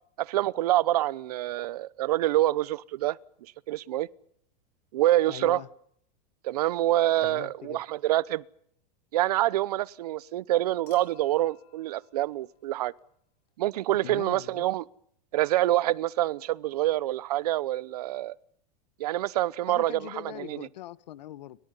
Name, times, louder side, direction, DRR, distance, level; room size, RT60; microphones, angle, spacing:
voice 1, 0.2-3.2 3.7-4.1 4.9-5.6 6.4-8.4 9.1-12.9 13.6-14.8 15.3-18.3 19.0-20.1 20.4-20.6, right 15 dB, 65° right, 0.9 m, -26 dB
voice 2, 5.3-5.7 7.2-7.8 14.0-14.7 19.7-21.6, left 13 dB, 85° left, 1.4 m, -42 dB
Human group actions / Chink clink / Liquid, 10.9-13.2 14.7-14.8, left 12 dB, 65° left, 6.8 m, -60 dB
29.5 x 25.0 x 5.6 m
supercardioid pair, 180°, 21 cm